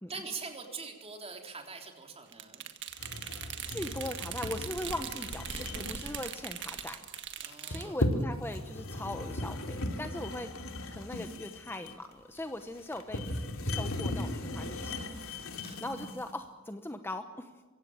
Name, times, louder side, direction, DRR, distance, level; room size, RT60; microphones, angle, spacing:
voice 1, 0.1-2.7 7.4-8.0 15.5-15.8, right 4 dB, 30° right, 3 dB, 3.6 m, -43 dB
sound 1, 2.3-7.9, right 9 dB, 60° right, 1.7 m, -41 dB
sound 2, 3.0-16.3, left 1 dB, 80° left, 2.6 m, -37 dB
voice 2, 3.7-7.0 7.7-10.5 10.9-13.3 13.6-15.0 15.8-17.6, left 1 dB, 10° left, 7 dB, 1.0 m, -40 dB
23.5 x 16.5 x 8.8 m, 1.4 s
head